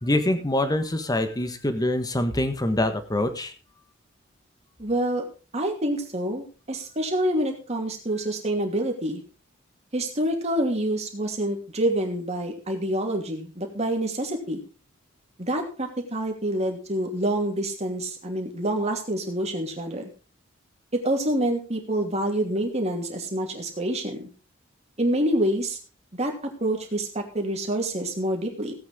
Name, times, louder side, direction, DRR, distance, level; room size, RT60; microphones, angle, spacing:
voice 1, 0.0-3.5, left 1 dB, 20° left, 8 dB, 1.4 m, -25 dB
voice 2, 4.8-5.2 5.5-9.2 9.9-14.6 15.4-20.0 20.9-24.3 25.0-25.8 26.1-26.3 26.6-28.7, right 1 dB, 35° right, 2 dB, 2.8 m, -27 dB
17.0 x 8.6 x 3.7 m, 0.35 s
head